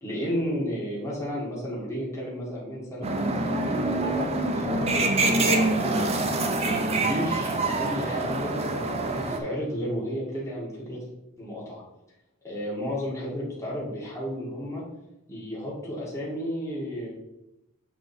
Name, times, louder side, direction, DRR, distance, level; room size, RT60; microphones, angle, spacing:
voice 1, 0.0-3.1 3.6-6.1 6.6-11.0 11.4-11.8 12.4-14.8 15.3-17.1, equal, 15° left, -6 dB, 1.8 m, -33 dB
sound 1, 3.0-9.4, right 2 dB, 30° right, 0.8 m, -25 dB
7.7 x 4.0 x 4.2 m, 0.89 s
head